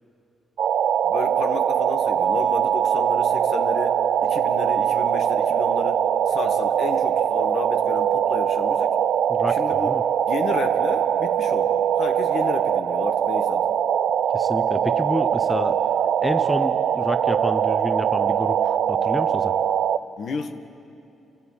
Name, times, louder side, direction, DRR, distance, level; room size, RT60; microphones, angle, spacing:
sound 1, 0.6-20.0, right 9 dB, 75° right, 0.6 m, -22 dB
voice 1, 1.0-8.9 9.5-9.9 10.3-13.7 20.2-20.5, left 5 dB, 70° left, 7 dB, 1.5 m, -32 dB
voice 2, 9.3-10.0 14.3-15.8 16.2-19.5, left 1 dB, 10° left, 10 dB, 0.8 m, -29 dB
27.5 x 15.5 x 8.7 m, 2.7 s
cardioid pair, 100°, 0 cm